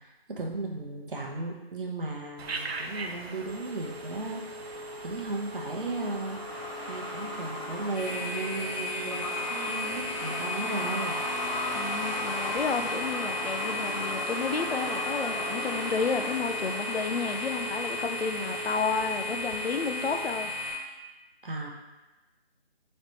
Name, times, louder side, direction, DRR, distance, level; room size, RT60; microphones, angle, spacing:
voice 1, 0.0-11.2 21.4-21.7, right 2 dB, 60° right, 0 dB, 0.8 m, -36 dB
Truck, 2.4-19.8, left 1 dB, 35° left, 1.0 m, -38 dB
Telephone, 2.4-20.5, right 1 dB, 85° right, 0.5 m, -41 dB
sound 1, 7.9-20.7, left 2 dB, 5° left, 0.8 m, -35 dB
voice 2, 11.7-20.5, left 5 dB, 80° left, 7 dB, 0.5 m, -31 dB
5.1 x 3.2 x 2.9 m, 1.1 s
figure-of-eight pair, 155°, 31 cm